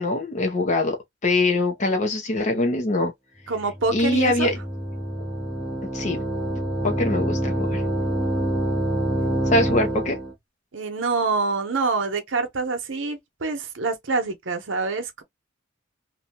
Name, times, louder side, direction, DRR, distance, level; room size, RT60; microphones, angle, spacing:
voice 1, 0.0-3.1 3.9-4.6 5.9-6.2 6.8-7.8 9.5-10.2, left 2 dB, 35° left, 0.6 m, -23 dB
sound 1, 3.5-10.3, right 1 dB, 5° right, 0.7 m, -26 dB
voice 2, 3.5-4.5 10.7-15.2, right 4 dB, 65° right, 0.8 m, -26 dB
2.7 x 2.2 x 2.9 m
head